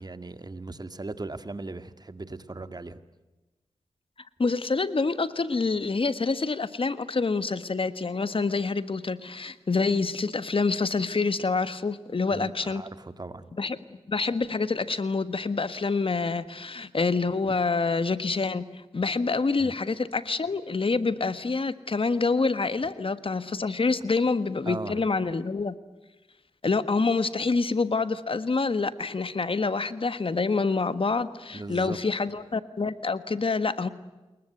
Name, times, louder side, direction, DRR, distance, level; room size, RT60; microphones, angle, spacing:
voice 1, 0.0-3.0 12.3-13.5 17.4-17.5 19.6-19.7 24.7-25.1 31.5-32.0, right 2 dB, 40° right, 11 dB, 1.9 m, -38 dB
voice 2, 4.4-12.8 13.6-13.8 14.1-18.7 18.9-25.7 26.6-33.9, left 4 dB, 55° left, 13 dB, 1.5 m, -27 dB
28.0 x 22.0 x 8.0 m, 1.1 s
cardioid pair, 50°, 11 cm